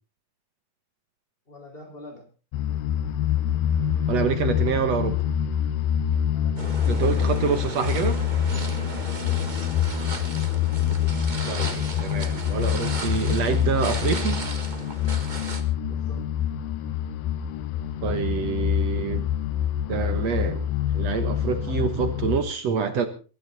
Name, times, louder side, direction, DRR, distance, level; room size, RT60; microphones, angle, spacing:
voice 1, 1.5-2.3 6.3-7.1 9.0-9.6 15.9-16.2, left 1 dB, 15° left, 2 dB, 4.7 m, -45 dB
sound 1, 2.5-22.4, left 10 dB, 75° left, 2.6 m, -26 dB
voice 2, 4.1-5.2 6.9-8.2 11.5-14.4 18.0-19.3 19.9-20.7 20.9-23.1, right 6 dB, 60° right, 9 dB, 2.0 m, -26 dB
sound 2, 6.6-15.6, right 3 dB, 85° right, 0.4 m, -36 dB
23.0 x 12.5 x 4.1 m, 0.35 s
omnidirectional pair, 4.2 m